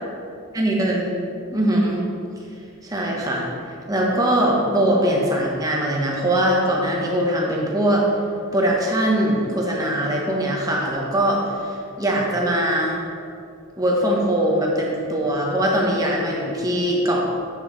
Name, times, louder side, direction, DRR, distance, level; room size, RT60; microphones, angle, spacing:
voice 1, 0.5-1.1 1.5-2.0 2.8-3.5 3.9-8.1 8.5-13.0 13.8-17.3, right 1 dB, 15° right, -2 dB, 1.0 m, -21 dB
8.3 x 6.6 x 3.1 m, 2.5 s
head